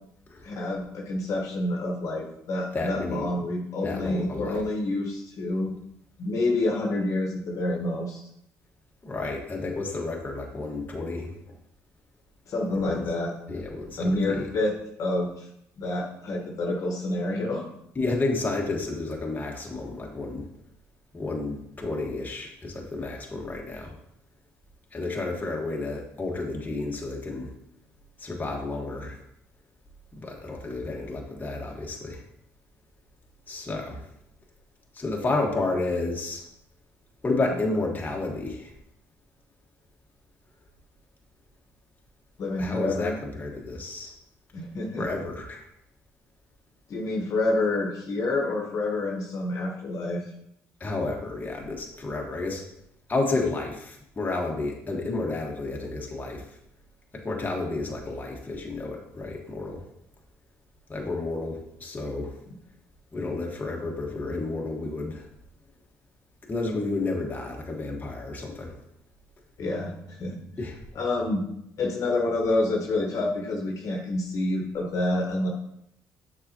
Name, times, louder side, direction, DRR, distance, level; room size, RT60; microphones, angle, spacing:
voice 1, 0.4-5.7 6.2-8.2 12.5-13.3 14.0-14.7 15.0-15.5 15.8-17.7 42.4-43.1 44.5-45.0 46.9-50.2 69.6-70.4 70.9-71.4 71.8-75.5, left 2 dB, 55° left, -1 dB, 1.3 m, -28 dB
voice 2, 2.7-3.3 3.8-4.6 9.0-11.3 12.7-13.0 13.5-14.5 17.9-20.4 21.1-23.9 24.9-27.5 28.2-29.2 30.1-32.2 33.5-34.0 34.9-36.4 37.2-38.7 42.6-44.1 45.0-45.7 50.8-52.6 53.1-56.4 57.1-59.8 60.9-62.3 63.1-65.3 66.5-68.7 70.6-70.8, left 2 dB, 25° left, -1 dB, 1.5 m, -31 dB
6.7 x 4.9 x 2.9 m, 0.75 s
supercardioid pair, 70°, 7 cm